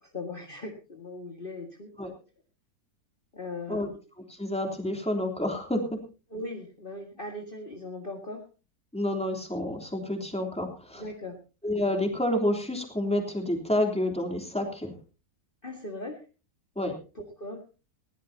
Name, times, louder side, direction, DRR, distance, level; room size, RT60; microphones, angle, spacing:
voice 1, 0.0-1.9 3.3-4.0 6.3-8.4 11.0-11.4 15.6-16.2 17.2-17.6, left 2 dB, 30° left, 2 dB, 2.1 m, -39 dB
voice 2, 4.3-6.0 8.9-11.0 11.6-14.9 16.7-17.0, left 1 dB, 5° left, 3 dB, 3.3 m, -29 dB
20.5 x 16.5 x 2.8 m, 0.33 s
omnidirectional pair, 1.9 m